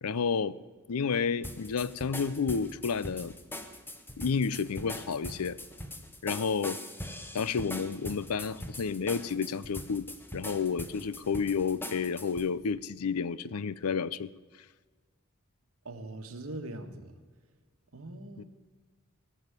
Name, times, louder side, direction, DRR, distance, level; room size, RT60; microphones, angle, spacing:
voice 1, 0.0-0.6 0.9-3.3 4.2-5.6 6.2-6.8 7.3-10.1 10.3-14.3 18.4-18.5, left 5 dB, 90° left, 19 dB, 0.6 m, -30 dB
sound 1, 1.4-12.5, left 1 dB, 10° left, 1.0 m, -42 dB
voice 2, 15.8-17.1 17.9-18.4, right 2 dB, 70° right, 6 dB, 1.6 m, -41 dB
18.5 x 7.1 x 9.6 m, 1.5 s
head